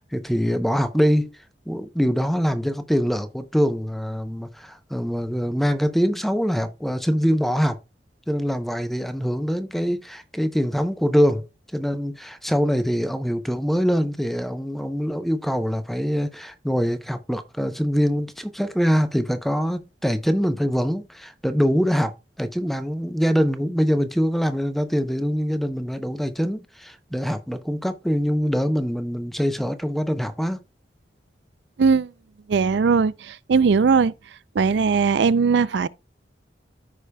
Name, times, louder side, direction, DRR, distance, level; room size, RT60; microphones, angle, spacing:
voice 1, 0.0-1.3 1.7-7.8 8.3-11.5 11.7-30.6, equal, ahead, 0.6 m, -24 dB
voice 2, 31.8-32.1 32.5-34.1 34.6-35.9, right 5 dB, 75° right, 0.4 m, -19 dB
14.0 x 5.0 x 2.2 m
head